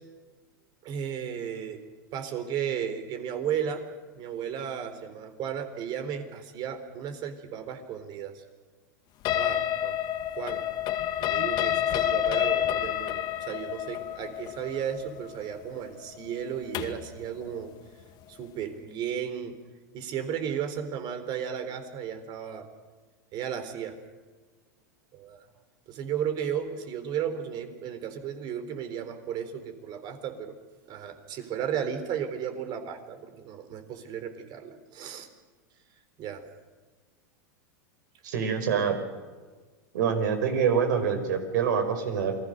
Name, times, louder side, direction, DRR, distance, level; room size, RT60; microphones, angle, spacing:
voice 1, 0.8-1.8 2.1-3.8 4.2-8.4 9.3-10.0 10.3-10.6 11.2-17.7 18.3-19.5 19.9-22.7 23.3-24.0 25.1-25.4 25.9-30.5 30.9-35.3 36.2-36.4, right 8 dB, 45° right, 9 dB, 4.0 m, -34 dB
sound 1, 9.3-17.1, left 11 dB, 45° left, 2.1 m, -29 dB
voice 2, 38.2-39.0 39.9-42.3, right 7 dB, 75° right, 7 dB, 5.0 m, -25 dB
28.5 x 20.5 x 6.6 m, 1.4 s
hypercardioid pair, 105°, 10 cm